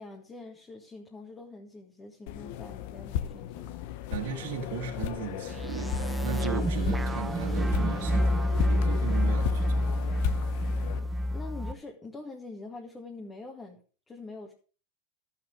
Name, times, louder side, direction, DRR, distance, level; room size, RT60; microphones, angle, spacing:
voice 1, 0.0-3.9 10.9-13.8 14.1-14.5, left 3 dB, 20° left, 2.0 m, -45 dB
sound 1, 2.3-11.0, left 11 dB, 60° left, 0.9 m, -36 dB
voice 2, 4.1-8.3 8.6-9.9, right 7 dB, 65° right, 1.7 m, -37 dB
sound 2, 5.5-11.7, equal, 10° right, 0.8 m, -28 dB
12.0 x 7.8 x 4.9 m
hypercardioid pair, 95°, 0 cm